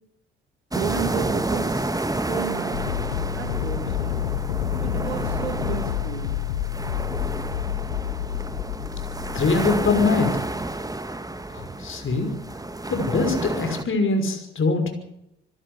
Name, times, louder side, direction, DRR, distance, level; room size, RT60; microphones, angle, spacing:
sound 1, 0.7-13.8, right 2 dB, 10° right, 2.0 m, -30 dB
voice 1, 0.7-1.9 2.3-2.8 3.3-4.2 4.8-6.3, right 7 dB, 90° right, 11 dB, 1.6 m, -32 dB
sound 2, 2.7-10.4, left 11 dB, 85° left, 1.4 m, -29 dB
voice 2, 9.3-10.4 11.5-12.3 12.9-14.9, left 3 dB, 40° left, 5 dB, 5.9 m, -23 dB
26.5 x 13.5 x 8.2 m, 0.80 s
hypercardioid pair, 50°, 31 cm